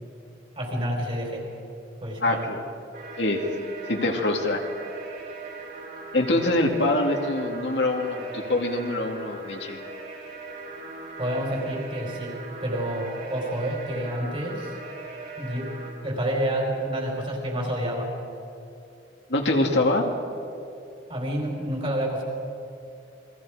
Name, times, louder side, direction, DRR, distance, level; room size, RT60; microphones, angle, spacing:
voice 1, 0.6-1.4 2.0-2.5 11.2-14.7 15.4-15.7 16.0-18.1 21.1-22.2, right 1 dB, 30° right, 0 dB, 4.4 m, -29 dB
voice 2, 2.2-2.6 3.2-4.6 6.1-9.8 19.3-20.1, left 2 dB, 60° left, 2 dB, 2.3 m, -24 dB
sound 1, 2.9-15.9, right 3 dB, 55° right, 7.1 m, -39 dB
29.5 x 22.0 x 5.0 m, 2.8 s
head